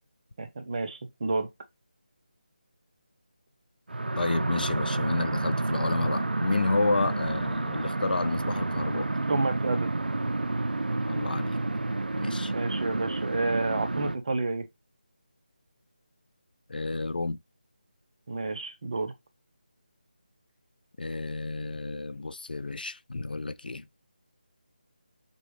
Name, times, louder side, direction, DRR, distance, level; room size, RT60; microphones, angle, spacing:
voice 1, 0.4-1.5 9.3-9.9 12.5-14.7 18.3-19.1, right 3 dB, 45° right, 0.8 m, -30 dB
sound 1, 3.9-14.2, right 2 dB, 90° right, 0.5 m, -30 dB
voice 2, 4.2-9.1 11.1-11.6 12.2-12.5 16.7-17.4 21.0-23.8, left 3 dB, 75° left, 0.4 m, -30 dB
5.2 x 2.3 x 3.1 m
figure-of-eight pair, 165°, 5 cm